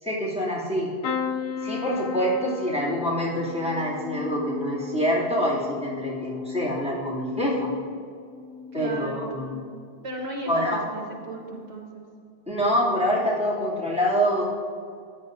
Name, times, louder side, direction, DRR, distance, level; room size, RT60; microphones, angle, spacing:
voice 1, 0.0-0.9 1.6-7.7 8.7-9.6 10.5-10.8 12.5-14.4, equal, 5° right, -8 dB, 2.7 m, -26 dB
sound 1, 1.0-8.9 9.3-9.9 11.1-11.3 11.5-11.6, left 6 dB, 80° left, 0.9 m, -35 dB
voice 2, 8.7-9.6 10.0-12.0, right 1 dB, 85° right, 0 dB, 1.6 m, -35 dB
14.5 x 10.0 x 2.7 m, 2.3 s
omnidirectional pair, 1.1 m